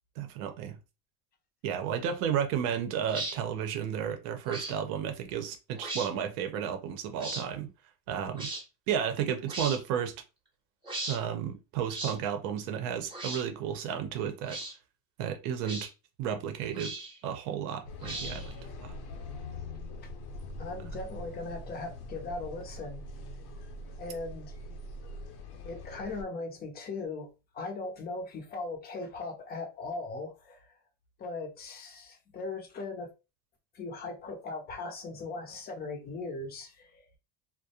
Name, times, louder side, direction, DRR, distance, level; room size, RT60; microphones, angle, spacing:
voice 1, 0.2-0.8 1.6-7.7 8.1-8.5 8.9-10.1 11.1-14.6 15.2-15.9 16.2-16.9 17.2-18.5 18.8-18.9, right 8 dB, 70° right, 0.7 m, -32 dB
sound 1, 3.1-3.4 4.4-4.8 5.8-6.1 7.2-7.4 8.4-8.6 9.5-9.8 10.8-11.2 11.9-12.2 13.1-13.4 14.4-14.7 15.6-15.9 16.7-17.2 18.0-18.5, right 2 dB, 10° right, 0.7 m, -37 dB
sound 2, 17.9-26.2, left 2 dB, 75° left, 0.8 m, -43 dB
voice 2, 20.6-23.0 24.0-24.5 25.6-30.6 31.2-33.1 33.7-37.0, left 3 dB, 25° left, 0.5 m, -39 dB
2.4 x 2.1 x 2.7 m
cardioid pair, 140°, 43 cm